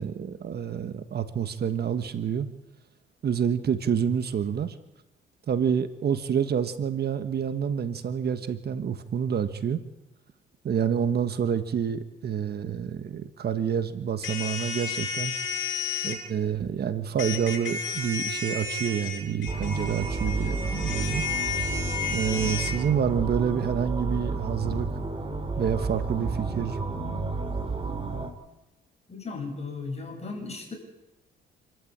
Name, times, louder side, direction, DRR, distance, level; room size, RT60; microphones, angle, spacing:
voice 1, 0.0-2.5 3.2-4.7 5.5-9.8 10.6-15.3 16.0-21.2 22.1-24.9 25.6-26.8, right 8 dB, 55° right, 10 dB, 1.5 m, -28 dB
sound 1, 14.2-16.2 17.2-22.7, left 5 dB, 70° left, 6.2 m, -32 dB
sound 2, 19.5-28.3, right 3 dB, 25° right, 3.6 m, -31 dB
voice 2, 29.1-30.7, left 4 dB, 30° left, 2 dB, 7.8 m, -36 dB
28.0 x 13.0 x 8.8 m, 0.97 s
cardioid pair, 90°, 20 cm